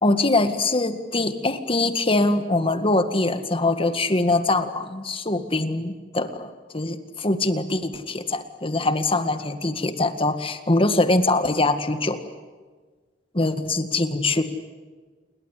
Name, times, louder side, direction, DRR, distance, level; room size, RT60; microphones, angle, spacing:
voice 1, 0.0-12.2 13.4-14.4, left 2 dB, 30° left, 9 dB, 1.9 m, -23 dB
29.0 x 22.0 x 8.4 m, 1.4 s
head